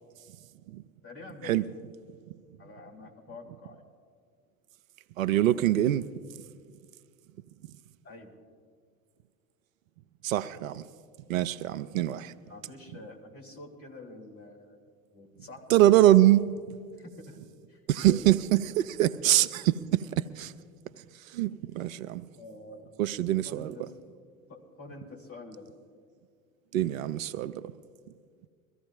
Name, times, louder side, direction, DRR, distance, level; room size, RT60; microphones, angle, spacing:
voice 1, 1.0-1.7 2.6-3.8 8.0-8.3 12.4-14.8 15.1-15.6 16.9-17.4 17.7-17.8 18.1-18.2 22.4-22.9 23.4-23.8 24.5-25.8, left 2 dB, 30° left, 3.1 m, -47 dB
voice 2, 5.2-6.0 10.2-10.8 11.3-12.3 15.7-16.5 17.9-20.5 21.1-22.2 23.0-23.7 26.7-27.6, right 13 dB, 70° right, 0.5 m, -24 dB
23.0 x 14.5 x 2.5 m
figure-of-eight pair, 70°, 43 cm